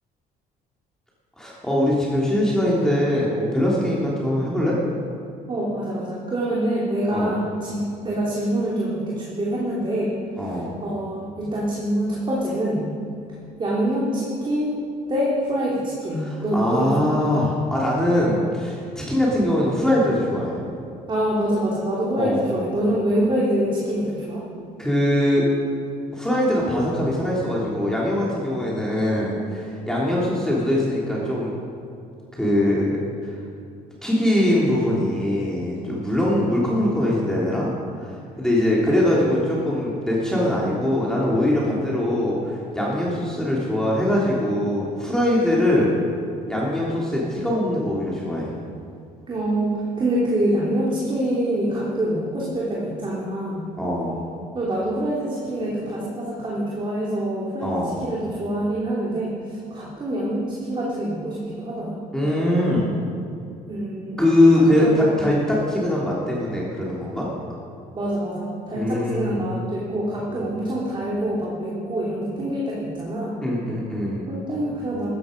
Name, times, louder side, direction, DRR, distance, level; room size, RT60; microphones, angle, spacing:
voice 1, 1.4-4.8 7.1-7.3 10.4-10.8 16.2-20.6 22.2-22.4 24.8-25.5 26.1-31.5 32.3-33.4 34.0-37.7 38.0-45.9 46.5-48.5 53.8-54.2 57.6-58.0 62.1-62.9 64.2-67.3 68.7-69.4 70.3-70.5 73.4-74.3, left 1 dB, 5° left, -6 dB, 3.3 m, -22 dB
voice 2, 5.5-10.1 10.8-12.9 13.6-14.8 15.1-17.1 21.1-24.4 49.3-53.7 54.5-57.7 58.0-62.0 63.7-64.2 64.6-65.3 67.9-73.4 74.3-75.1, right 1 dB, 30° right, -5 dB, 3.3 m, -25 dB
14.0 x 13.0 x 5.3 m, 2.6 s
cardioid pair, 110°, 17 cm